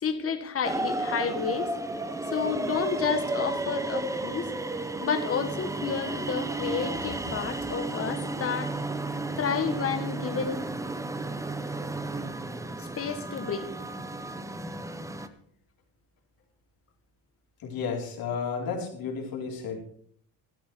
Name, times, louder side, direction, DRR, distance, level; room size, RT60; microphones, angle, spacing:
voice 1, 0.0-1.7 2.3-4.5 5.0-8.7 9.4-10.6 12.8-13.7, left 6 dB, 35° left, 7 dB, 1.6 m, -30 dB
sound 1, 0.6-15.3, right 2 dB, 10° right, 0.6 m, -33 dB
voice 2, 17.6-19.8, left 5 dB, 55° left, 0 dB, 3.8 m, -32 dB
13.5 x 12.5 x 4.6 m, 0.63 s
cardioid pair, 165°, 41 cm